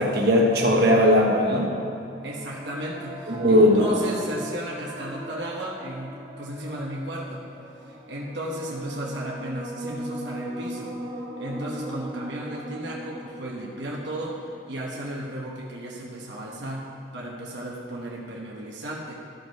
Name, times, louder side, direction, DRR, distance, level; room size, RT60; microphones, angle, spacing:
voice 1, 0.0-1.7 3.3-4.0, left 1 dB, 60° right, -2 dB, 1.4 m, -19 dB
sound 1, 2.0-15.6, right 1 dB, 20° right, 1.4 m, -39 dB
voice 2, 2.2-7.5 7.8-10.9 11.4-16.8 17.1-19.2, right 1 dB, 85° right, -3 dB, 1.1 m, -34 dB
13.5 x 5.3 x 4.6 m, 2.8 s
head